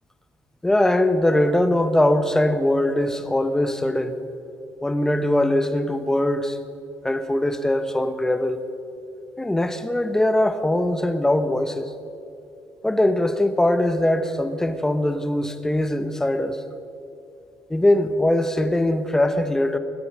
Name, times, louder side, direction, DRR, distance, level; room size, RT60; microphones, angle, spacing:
voice 1, 0.6-4.2 4.8-6.6 7.0-8.6 9.4-11.9 12.8-16.6 17.7-19.8, left 1 dB, 5° left, 10 dB, 0.8 m, -21 dB
20.5 x 9.4 x 7.4 m, 2.8 s
cardioid pair, 155°, 7 cm